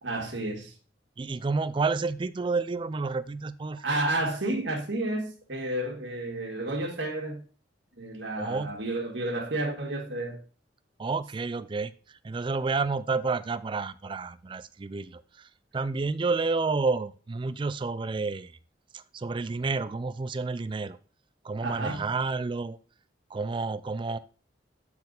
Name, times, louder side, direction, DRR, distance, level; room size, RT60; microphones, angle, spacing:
voice 1, 0.0-0.7 3.8-7.4 8.0-10.4 21.6-22.1, right 2 dB, 75° right, 1.7 m, -31 dB
voice 2, 1.2-3.8 8.4-8.7 11.0-11.9 12.2-15.5 15.7-18.6 18.9-21.0 21.4-22.8 23.3-24.2, right 4 dB, 25° right, 0.3 m, -30 dB
8.6 x 4.2 x 4.0 m
head